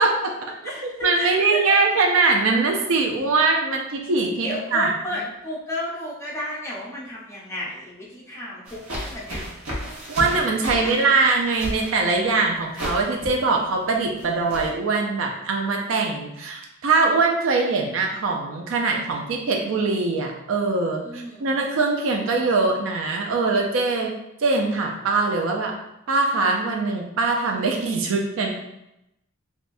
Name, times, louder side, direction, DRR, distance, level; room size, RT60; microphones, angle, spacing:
voice 1, 0.0-0.5 0.8-4.9 10.1-24.1 24.4-25.7 26.1-28.5, right 3 dB, 65° right, 2 dB, 0.4 m, -22 dB
voice 2, 0.6-1.8 4.4-9.4 9.8-11.1 21.0-21.6, left 1 dB, 15° left, -6 dB, 0.7 m, -33 dB
sound 1, 8.7-14.7, equal, 85° right, 1.1 m, -34 dB
3.2 x 2.6 x 2.5 m, 0.87 s
head